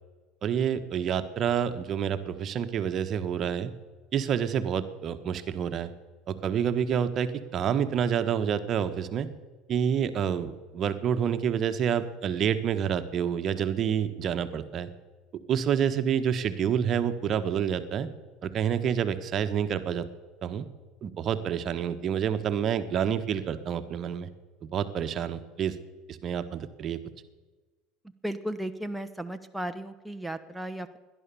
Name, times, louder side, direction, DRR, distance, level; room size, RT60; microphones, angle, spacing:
voice 1, 0.4-3.7 4.1-5.9 6.3-9.3 9.7-14.9 15.5-18.1 18.4-20.0 20.4-20.7 21.0-24.3 24.7-25.7 26.1-27.0, right 8 dB, 45° right, 9 dB, 1.2 m, -28 dB
voice 2, 28.2-31.0, right 1 dB, 5° right, 7 dB, 1.0 m, -35 dB
18.0 x 11.0 x 7.0 m, 1.3 s
hypercardioid pair, 70°, 0 cm